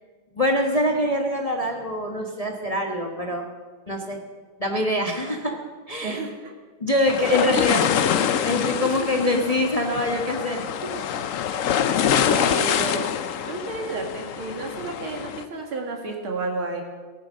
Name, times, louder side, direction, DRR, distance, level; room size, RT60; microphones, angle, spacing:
voice 1, 0.3-3.4 3.9-4.2 4.6-5.6 5.9-6.2 6.8-7.8 8.4-10.9, left 1 dB, 20° left, 2 dB, 1.1 m, -24 dB
voice 2, 6.0-6.5 7.3-7.7 8.8-8.9 12.1-13.1 13.5-16.8, right 3 dB, 85° right, 2 dB, 2.9 m, -31 dB
sound 1, 7.1-15.4, left 8 dB, 85° left, 0.7 m, -25 dB
18.5 x 9.2 x 6.4 m, 1.4 s
omnidirectional pair, 2.2 m